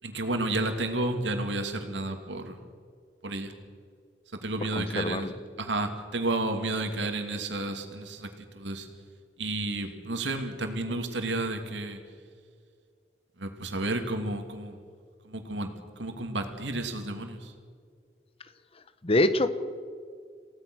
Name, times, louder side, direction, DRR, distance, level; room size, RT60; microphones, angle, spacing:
voice 1, 0.0-2.6 3.2-3.5 4.4-5.3 5.6-8.3 8.5-8.9 9.4-12.0 13.4-14.8 15.2-15.7 16.0-17.5, right 2 dB, 90° right, 5 dB, 2.7 m, -31 dB
voice 2, 4.7-5.3 19.0-19.5, left 1 dB, 30° left, 12 dB, 1.1 m, -24 dB
28.0 x 17.5 x 6.3 m, 2.1 s
head